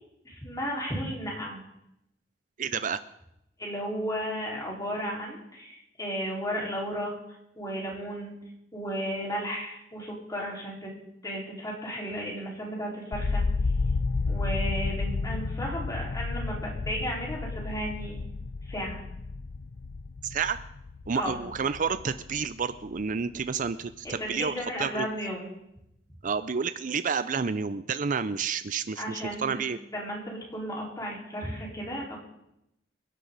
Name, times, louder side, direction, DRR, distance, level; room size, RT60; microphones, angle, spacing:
voice 1, 0.2-1.6 3.6-8.3 8.7-10.9 11.2-13.4 14.3-18.2 18.6-19.0 21.1-21.4 24.2-25.5 29.0-29.7 29.9-32.2, equal, 20° left, -3 dB, 4.6 m, -34 dB
voice 2, 2.6-3.0 20.2-20.6 21.1-24.5 24.8-25.1 26.2-29.8, right 5 dB, 45° right, 13 dB, 0.5 m, -30 dB
sound 1, 13.1-23.1 23.4-24.1, left 3 dB, 80° left, 0.6 m, -32 dB
27.0 x 11.0 x 4.1 m, 0.84 s
head